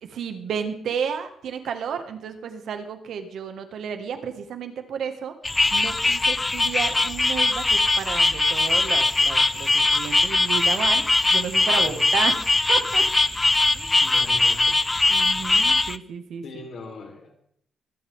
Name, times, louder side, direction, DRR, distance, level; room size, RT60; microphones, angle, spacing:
voice 1, 0.0-5.3 5.7-13.1 13.7-13.9 15.1-16.4, right 7 dB, 75° right, 7 dB, 1.8 m, -32 dB
sound 1, 5.4-16.0, left 2 dB, 20° left, 0.5 m, -21 dB
voice 2, 14.0-14.8 16.4-17.3, left 3 dB, 65° left, 2 dB, 3.8 m, -39 dB
23.5 x 8.5 x 3.6 m, 0.70 s
cardioid pair, 85°, 0 cm